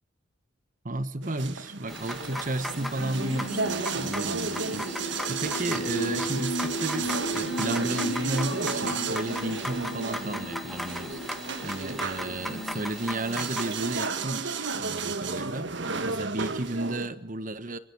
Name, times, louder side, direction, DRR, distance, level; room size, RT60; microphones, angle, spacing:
voice 1, 0.8-17.8, right 2 dB, 40° right, 13 dB, 1.4 m, -33 dB
sound 1, 1.2-17.1, right 4 dB, 65° right, 1.5 m, -33 dB
sound 2, 1.9-14.1, left 1 dB, ahead, 1.7 m, -38 dB
sound 3, 3.0-12.9, equal, 55° left, 2.0 m, -36 dB
25.5 x 24.5 x 7.0 m, 0.70 s
head